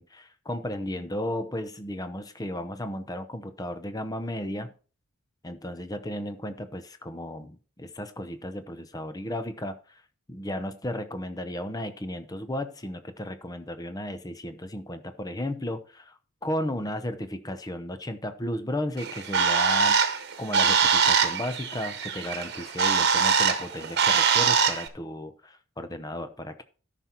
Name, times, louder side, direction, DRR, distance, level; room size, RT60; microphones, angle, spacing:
voice 1, 0.0-4.7 5.4-10.0 10.3-16.1 16.4-26.6, left 1 dB, 15° left, 10 dB, 0.7 m, -34 dB
Bird, 19.0-24.9, right 6 dB, 50° right, 1.2 m, -23 dB
13.5 x 5.9 x 4.4 m, 0.38 s
head